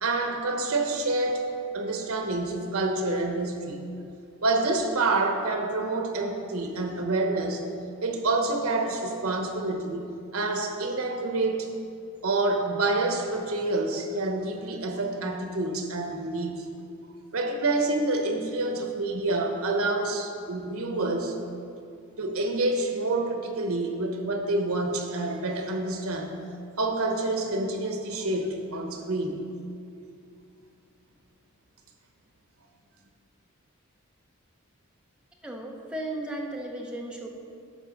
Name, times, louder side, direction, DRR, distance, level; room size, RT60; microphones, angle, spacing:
voice 1, 0.0-1.5 1.7-3.8 4.4-7.6 8.0-11.8 12.2-16.6 17.3-21.4 22.2-26.3 26.8-29.4, right 2 dB, 85° right, 4 dB, 1.1 m, -27 dB
voice 2, 35.4-37.3, right 1 dB, 5° right, -1 dB, 0.9 m, -35 dB
11.0 x 4.6 x 6.4 m, 2.6 s
head